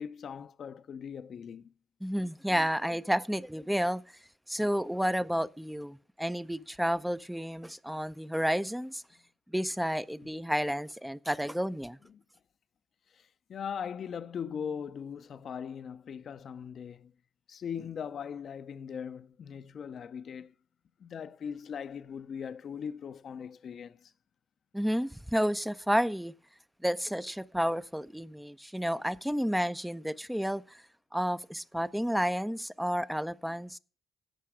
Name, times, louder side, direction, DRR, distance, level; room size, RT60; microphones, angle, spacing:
voice 1, 0.0-1.7 10.2-10.3 12.1-12.2 13.1-17.1 17.5-20.5 21.0-24.1, left 7 dB, 60° left, 0.6 m, -40 dB
voice 2, 2.0-4.0 4.5-9.0 9.5-12.0 24.7-26.3 26.8-30.8 31.1-33.8, equal, 5° right, 0.4 m, -31 dB
11.5 x 7.5 x 4.9 m
cardioid pair, 85°, 0 cm